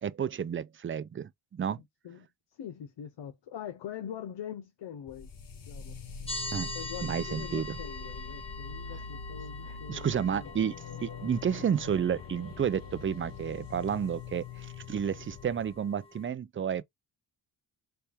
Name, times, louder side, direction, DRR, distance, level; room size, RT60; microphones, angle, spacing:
voice 1, 0.0-1.8 6.5-6.7 7.0-7.8 9.7-10.7 11.0-16.8, right 8 dB, 30° right, 0.4 m, -31 dB
voice 2, 2.0-5.3 5.7-6.0 6.7-10.5, left 9 dB, 85° left, 0.8 m, -43 dB
sound 1, 5.1-15.7, left 5 dB, 50° left, 1.0 m, -43 dB
sound 2, 6.3-16.3, left 2 dB, 15° left, 1.0 m, -44 dB
4.3 x 3.4 x 3.3 m
wide cardioid pair, 120°, 42 cm